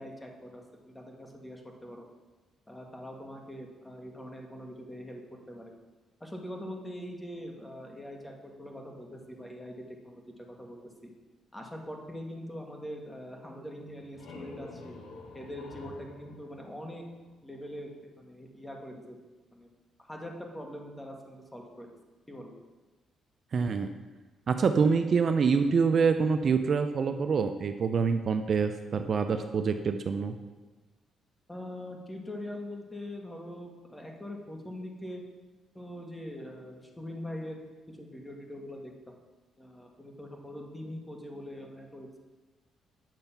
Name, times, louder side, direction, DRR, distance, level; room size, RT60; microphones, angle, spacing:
voice 1, 0.0-2.0 2.7-5.2 5.5-5.6 6.2-11.1 11.5-14.9 15.3-17.1 17.4-17.9 18.2-19.2 19.5-19.7 20.0-21.9 22.3-22.5 31.5-35.2 35.8-37.6 37.9-39.2 39.6-42.2, left 1 dB, 10° left, 1 dB, 1.7 m, -42 dB
sound 1, 13.8-17.5, left 3 dB, 85° left, 1.3 m, -48 dB
voice 2, 23.5-23.9 24.5-30.3, right 5 dB, 50° right, 8 dB, 0.6 m, -26 dB
9.1 x 6.6 x 5.8 m, 1.2 s
cardioid pair, 90°, 0 cm